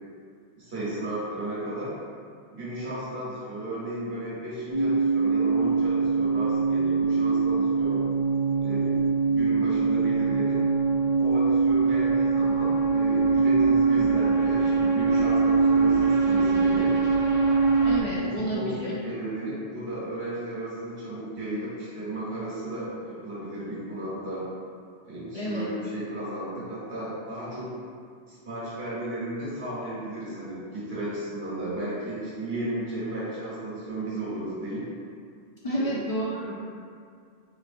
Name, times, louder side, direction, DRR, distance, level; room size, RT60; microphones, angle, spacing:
voice 1, 0.6-1.9 2.5-8.0 8.6-8.9 9.3-10.6 11.2-16.9 18.3-24.4 25.0-27.7 28.3-34.8 35.7-35.9, right 1 dB, 65° right, -9 dB, 1.3 m, -34 dB
sound 1, 4.7-18.0, right 4 dB, 40° right, 0.4 m, -23 dB
voice 2, 17.8-19.0 25.3-25.7 35.6-36.5, equal, 55° left, -6 dB, 0.4 m, -30 dB
4.2 x 3.0 x 2.5 m, 2.2 s
omnidirectional pair, 1.1 m